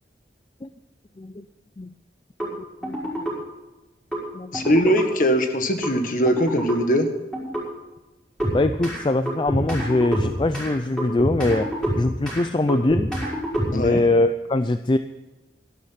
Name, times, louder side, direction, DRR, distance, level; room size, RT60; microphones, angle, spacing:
sound 1, 2.4-2.5 2.8-3.3 4.1-4.2 4.5-5.1 5.8-5.9 6.3-6.8 7.3-7.6 8.4-9.0 9.3-10.7 11.0-12.4 12.7-14.0, equal, 5° left, 5.7 m, -27 dB
voice 1, 4.5-7.1 13.7-14.0, equal, 50° left, 7 dB, 1.6 m, -21 dB
voice 2, 8.5-13.1 13.7-15.0, left 2 dB, 25° left, 10 dB, 0.4 m, -22 dB
13.0 x 12.0 x 5.8 m, 1.1 s
head